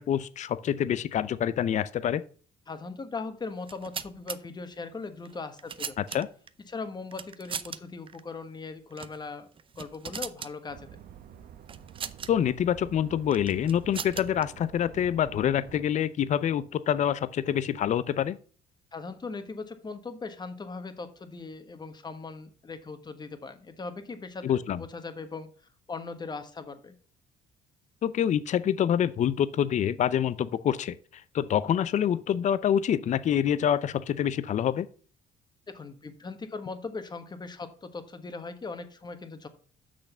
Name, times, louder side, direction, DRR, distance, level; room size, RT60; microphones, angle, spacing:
voice 1, 0.0-2.2 6.0-6.3 12.3-18.4 24.4-24.8 28.0-34.9, left 9 dB, 45° left, 0.6 m, -26 dB
voice 2, 2.7-5.9 6.6-9.5 9.8-11.0 18.9-24.4 24.7-25.5 25.9-27.0 35.7-39.5, left 4 dB, 25° left, 1.3 m, -39 dB
sound 1, 3.6-4.4 5.2-6.5 7.1-7.8 8.1-8.2 8.9-9.2 9.5-10.5 11.7-12.3 13.3-14.4, right 7 dB, 30° right, 0.6 m, -38 dB
sound 2, 10.7-15.8, right 9 dB, 60° right, 1.0 m, -48 dB
6.5 x 6.0 x 6.7 m
cardioid pair, 110°, 17 cm